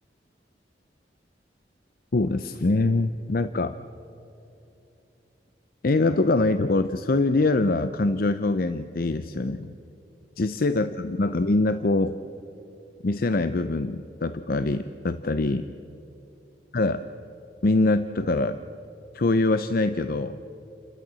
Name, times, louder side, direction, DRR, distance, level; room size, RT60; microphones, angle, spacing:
voice 1, 2.1-3.7 5.8-9.8 10.4-12.2 13.0-15.7 16.7-17.0 17.6-18.6 19.1-20.4, left 2 dB, 55° left, 11 dB, 0.6 m, -24 dB
30.0 x 13.0 x 7.6 m, 2.9 s
head